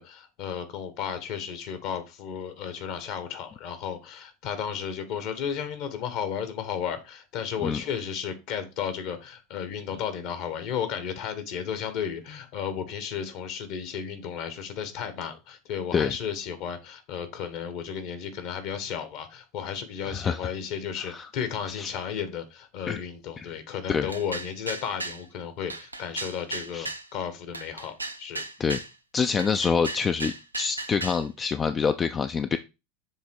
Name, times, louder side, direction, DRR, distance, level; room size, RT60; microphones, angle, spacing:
voice 1, 0.0-28.4, left 8 dB, 50° left, 1.3 m, -34 dB
voice 2, 20.1-20.4 21.0-21.3 21.8-21.9 22.9-23.0 23.4-23.5 23.9-24.1 26.7-26.9 28.6-28.8 29.1-32.6, left 6 dB, 25° left, 0.4 m, -26 dB
sound 1, 24.1-25.2 25.7-27.1 27.5-28.9 29.4-31.2, right 2 dB, 90° right, 0.5 m, -35 dB
7.2 x 3.5 x 4.6 m
figure-of-eight pair, 80°, 0 cm